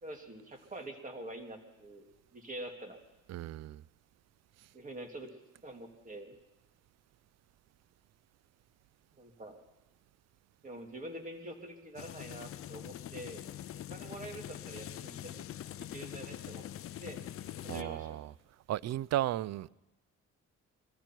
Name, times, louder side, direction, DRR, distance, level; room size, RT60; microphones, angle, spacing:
voice 1, 0.0-2.0 2.3-3.0 4.7-5.3 5.6-6.3 9.2-9.6 10.6-13.4 13.9-15.4 15.8-16.6 17.0-17.2 17.6-18.3, right 1 dB, 25° right, 2.6 m, -45 dB
voice 2, 3.3-3.8 17.7-18.3 18.7-19.7, right 13 dB, 60° right, 0.4 m, -34 dB
sound 1, 12.0-17.8, left 12 dB, 50° left, 0.4 m, -44 dB
21.5 x 14.0 x 4.5 m
cardioid pair, 90°, 30 cm